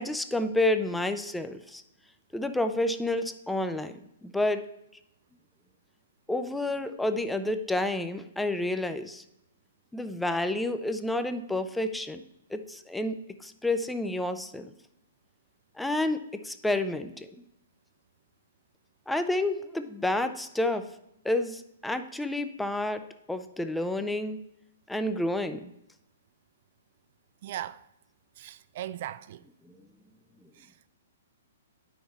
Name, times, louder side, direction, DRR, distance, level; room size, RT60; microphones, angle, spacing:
voice 1, 0.0-1.8 2.3-4.6 6.3-9.2 9.9-12.2 12.5-14.7 15.8-17.3 19.1-20.9 21.2-24.4 24.9-25.7 29.6-29.7, left 1 dB, 5° left, 0.5 m, -30 dB
voice 2, 27.4-27.8 28.4-29.4 30.6-30.9, right 12 dB, 50° right, 0.3 m, -38 dB
9.3 x 5.9 x 4.1 m
hypercardioid pair, 130°, 0 cm